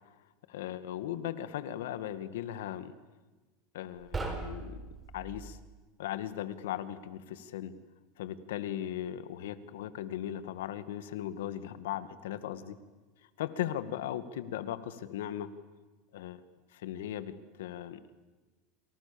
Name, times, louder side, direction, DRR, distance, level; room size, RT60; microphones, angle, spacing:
voice 1, 0.5-2.9 3.7-4.8 5.1-5.6 6.0-7.7 8.2-12.8 13.4-15.5 16.1-16.4 16.7-17.3 17.6-18.0, left 11 dB, 85° left, 13 dB, 2.1 m, -37 dB
sound 1, 4.0-5.6, right 3 dB, 15° right, 4.5 m, -39 dB
30.0 x 28.0 x 7.1 m, 1.3 s
supercardioid pair, 130°, 0 cm